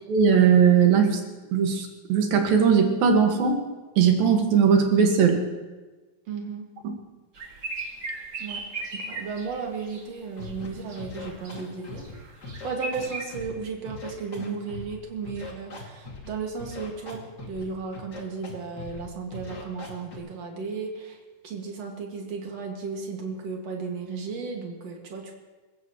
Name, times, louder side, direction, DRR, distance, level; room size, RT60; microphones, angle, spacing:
voice 1, 0.1-1.2 1.5-3.6 4.0-5.4 6.8-6.9, right 6 dB, 85° right, 3 dB, 3.6 m, -19 dB
voice 2, 6.3-6.7 8.4-12.0 12.6-17.2 17.5-21.2 21.4-25.3, right 5 dB, 50° right, 1 dB, 3.0 m, -34 dB
sound 1, 7.3-10.1 10.4-11.6 11.9-13.2, right 2 dB, 35° right, 2.2 m, -37 dB
Scratching (performance technique), 10.4-10.7 11.0-12.1 12.4-13.5 13.9-14.9 15.3-16.3 16.6-17.6 17.9-18.5 18.8-19.0 19.3-20.2, left 3 dB, 30° left, 2.6 m, -40 dB
26.5 x 15.0 x 3.1 m, 1.2 s
omnidirectional pair, 4.0 m